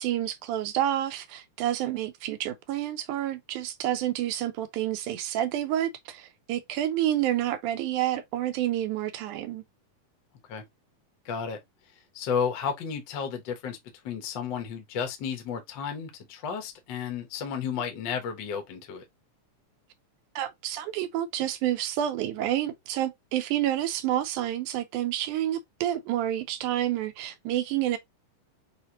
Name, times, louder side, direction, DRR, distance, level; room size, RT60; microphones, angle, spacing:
voice 1, 0.0-9.6 20.4-28.0, right 12 dB, 80° right, 2.0 m, -29 dB
voice 2, 11.2-11.6 12.1-13.8 14.0-19.0, left 7 dB, 90° left, 1.0 m, -32 dB
6.3 x 2.5 x 2.7 m
omnidirectional pair, 3.7 m